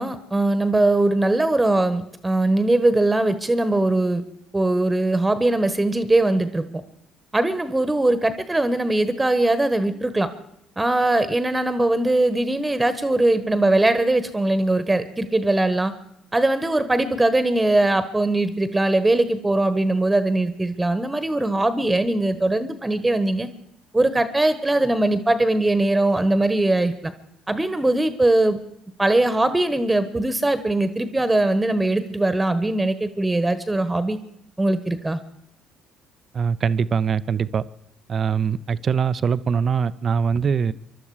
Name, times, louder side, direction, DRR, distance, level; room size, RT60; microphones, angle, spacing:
voice 1, 0.0-4.2 4.5-6.6 7.3-10.3 10.8-15.9 16.3-23.5 23.9-27.1 27.5-28.6 29.0-34.2 34.6-35.2, right 2 dB, 15° right, 12 dB, 1.3 m, -21 dB
voice 2, 36.3-37.6 38.1-40.7, right 6 dB, 45° right, 16 dB, 0.6 m, -22 dB
24.5 x 12.0 x 4.9 m, 0.75 s
hypercardioid pair, 60°, 0 cm